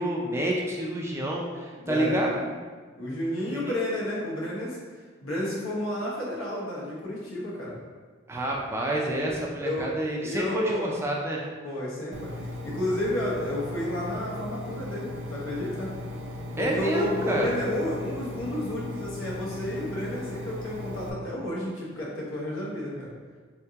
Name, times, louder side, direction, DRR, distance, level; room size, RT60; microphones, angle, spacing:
voice 1, 0.0-2.5 3.5-3.8 8.3-11.4 16.6-17.6, right 1 dB, 10° right, -2 dB, 0.3 m, -28 dB
voice 2, 1.8-2.2 3.0-4.8 5.2-7.7 9.6-9.9 10.2-10.9 11.6-12.3 12.6-15.9 16.6-23.1, left 1 dB, 90° left, -5 dB, 1.1 m, -31 dB
Engine, 12.1-21.1, left 1 dB, 65° right, 0.5 m, -37 dB
3.7 x 3.4 x 2.8 m, 1.5 s
head